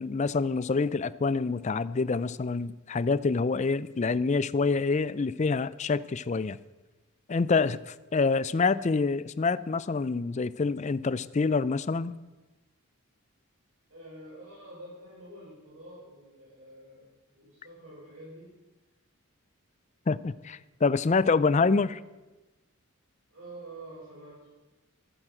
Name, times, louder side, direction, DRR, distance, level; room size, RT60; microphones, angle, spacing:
voice 1, 0.0-6.6 7.3-12.1 20.1-22.0, left 4 dB, 30° left, 17 dB, 0.4 m, -26 dB
voice 2, 13.9-17.1 17.3-18.6 23.3-24.5, right 1 dB, 65° right, -10 dB, 6.3 m, -47 dB
13.5 x 9.2 x 7.7 m, 1.1 s
head